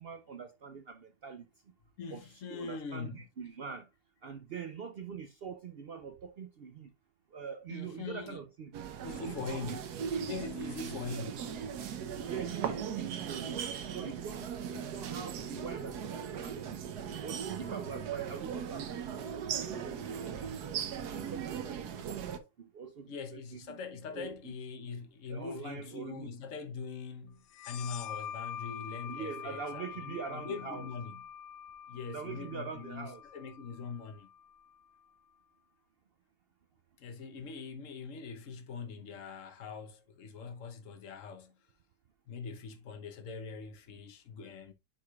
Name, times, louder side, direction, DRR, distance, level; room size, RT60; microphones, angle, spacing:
voice 1, 0.0-1.4 2.1-3.9 4.2-6.9 7.3-8.7 9.3-9.8 12.2-16.8 17.2-19.5 19.8-20.5 21.2-23.8 24.1-24.5 25.3-26.3 29.0-30.9 31.9-33.2, right 6 dB, 65° right, 0.6 m, -44 dB
voice 2, 2.0-3.2 7.7-8.4 9.0-9.9 10.2-11.5 23.1-31.2 31.9-34.3 37.0-41.6 42.3-44.7, left 5 dB, 55° left, 1.3 m, -42 dB
sound 1, 8.7-22.4, right 8 dB, 80° right, 1.4 m, -38 dB
sound 2, 27.5-34.8, left 9 dB, 70° left, 1.0 m, -45 dB
10.0 x 4.8 x 2.4 m
omnidirectional pair, 1.7 m